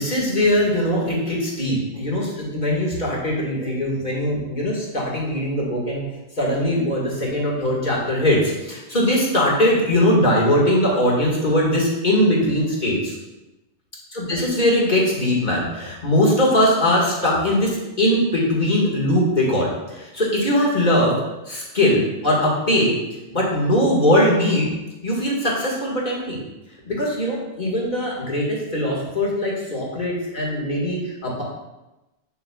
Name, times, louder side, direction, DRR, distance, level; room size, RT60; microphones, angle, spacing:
voice 1, 0.0-6.0 6.4-13.2 14.1-21.1 21.5-22.9 23.3-24.7 25.0-26.4 26.9-31.4, left 1 dB, 45° left, -4 dB, 2.0 m, -21 dB
8.6 x 7.0 x 2.4 m, 1.0 s
omnidirectional pair, 1.1 m